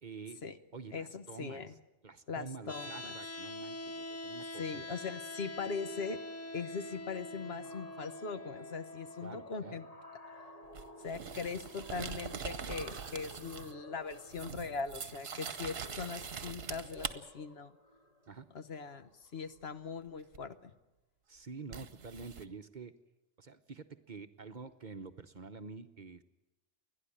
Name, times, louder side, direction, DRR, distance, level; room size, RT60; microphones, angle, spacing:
voice 1, 0.0-0.4 0.7-1.7 2.0-4.8 9.2-9.8 18.3-18.5 21.3-22.9 23.4-26.2, right 4 dB, 45° right, 8 dB, 0.9 m, -48 dB
voice 2, 0.9-1.7 2.3-3.1 4.6-6.2 6.5-9.9 11.0-17.7 18.5-20.7, left 5 dB, 60° left, 10 dB, 1.3 m, -40 dB
sound 1, 2.7-14.7, left 1 dB, 15° left, 0.7 m, -46 dB
sound 2, 3.9-4.0 4.3-4.5 4.8-19.7, left 1 dB, 30° left, 2.8 m, -58 dB
sound 3, 10.7-13.8 14.1-17.1 20.3-20.5 21.7-22.4, right 6 dB, 60° right, 1.2 m, -43 dB
29.5 x 11.0 x 9.9 m, 1.0 s
omnidirectional pair, 1.2 m